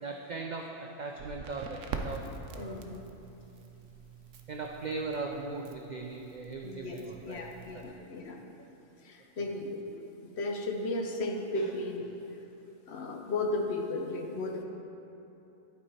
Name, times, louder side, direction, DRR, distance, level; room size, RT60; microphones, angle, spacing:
voice 1, 0.0-3.2 4.5-7.7 8.0-8.1 9.5-9.6 11.6-11.8, right 3 dB, 65° right, 1 dB, 0.4 m, -39 dB
Crackle, 1.1-7.9, right 4 dB, 80° right, 1.0 m, -44 dB
voice 2, 2.6-3.0 6.6-7.0 7.3-8.4 9.0-12.1 12.9-14.6, left 2 dB, 60° left, 1 dB, 1.0 m, -35 dB
11.5 x 4.6 x 4.3 m, 3.0 s
omnidirectional pair, 1.3 m